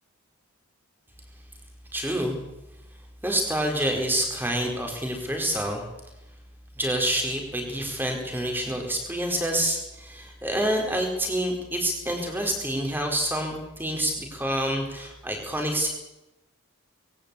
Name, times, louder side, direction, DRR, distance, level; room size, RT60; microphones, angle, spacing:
voice 1, 1.9-2.4 3.2-5.8 6.8-15.9, right 1 dB, 10° right, 2 dB, 4.5 m, -27 dB
21.5 x 17.0 x 8.5 m, 0.96 s
head